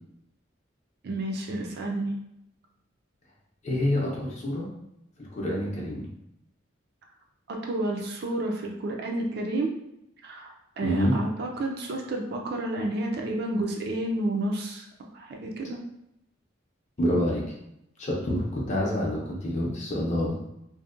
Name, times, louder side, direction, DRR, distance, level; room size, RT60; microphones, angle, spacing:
voice 1, 1.0-2.1 7.5-9.7 10.2-14.9 15.1-15.8, right 1 dB, 55° right, 1 dB, 0.4 m, -30 dB
voice 2, 3.6-4.7 5.2-6.1 10.8-11.1 17.0-17.4 18.0-20.4, left 1 dB, 35° left, -3 dB, 0.6 m, -27 dB
2.6 x 2.1 x 2.4 m, 0.81 s
head